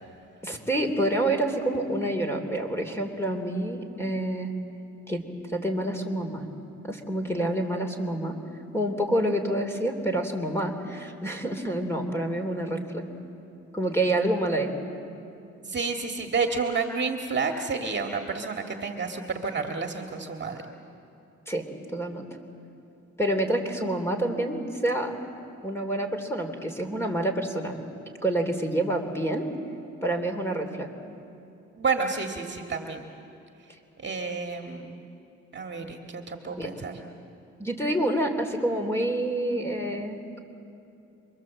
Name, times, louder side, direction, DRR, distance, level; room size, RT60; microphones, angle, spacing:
voice 1, 0.4-4.5 5.1-6.4 6.8-8.4 8.7-13.1 13.7-14.7 21.5-21.7 21.9-22.3 23.2-25.1 25.6-27.8 28.2-29.5 30.0-30.9 36.6-36.7 37.6-40.4, right 1 dB, 10° left, 4 dB, 3.3 m, -28 dB
voice 2, 15.6-20.7 31.7-33.1 34.0-35.0 35.5-36.9, right 4 dB, 35° right, 3 dB, 2.0 m, -30 dB
27.5 x 23.5 x 7.7 m, 2.8 s
cardioid pair, 90°, 30 cm